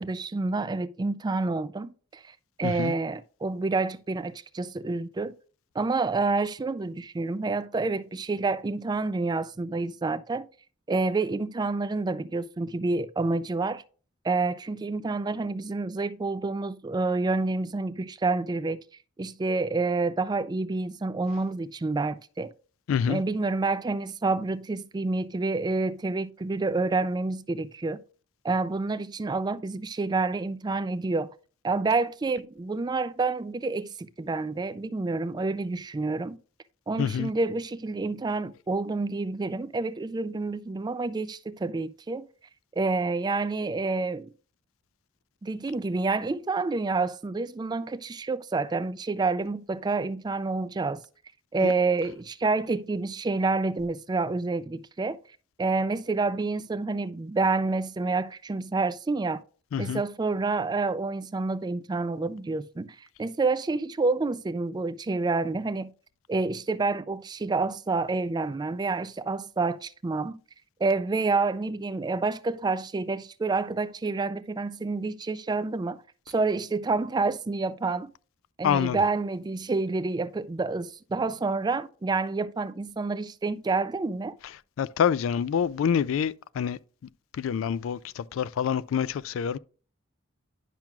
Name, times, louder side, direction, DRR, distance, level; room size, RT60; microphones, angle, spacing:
voice 1, 0.0-5.4 5.7-10.5 10.9-13.8 14.2-18.8 19.2-22.5 23.1-28.0 28.4-31.3 31.6-36.4 36.9-42.3 42.8-44.3 45.4-51.0 51.5-55.2 55.6-59.4 59.8-65.9 66.3-70.4 70.8-76.0 76.3-78.1 78.6-84.4, right 3 dB, 20° right, 0.3 m, -28 dB
voice 2, 22.9-23.2 37.0-37.3 51.6-51.7 59.7-60.0 78.6-79.0 84.8-86.8 87.4-89.6, left 7 dB, 70° left, 0.3 m, -26 dB
10.5 x 5.9 x 2.3 m
head